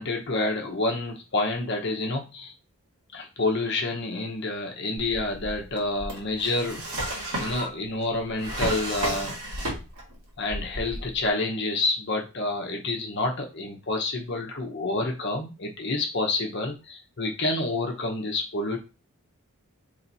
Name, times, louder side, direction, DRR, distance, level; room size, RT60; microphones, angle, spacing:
voice 1, 0.0-2.5 3.1-6.8 7.4-9.4 10.4-18.8, left 2 dB, 50° left, 2 dB, 0.9 m, -28 dB
Drawer open or close, 5.0-10.2 10.5-11.3, right 1 dB, 75° right, 1.7 m, -33 dB
3.2 x 3.0 x 4.0 m, 0.29 s
head